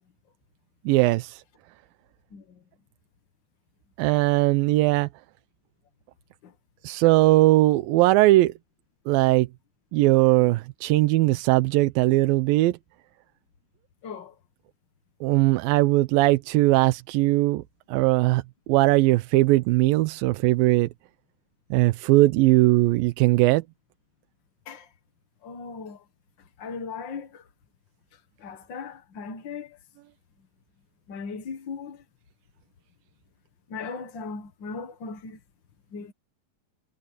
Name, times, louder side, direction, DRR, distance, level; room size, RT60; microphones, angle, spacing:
voice 1, 0.9-1.4 4.0-5.1 6.8-8.5 9.1-9.5 9.9-12.8 15.2-17.6 17.9-20.9 21.7-23.6, right 18 dB, 90° right, 2.5 m, -20 dB
voice 2, 14.0-14.4 24.6-24.9 25.4-26.0 26.6-27.4 28.4-29.8 31.1-32.0 33.7-35.4 35.9-36.1, left 5 dB, 50° left, 1.4 m, -37 dB
omnidirectional pair, 4.0 m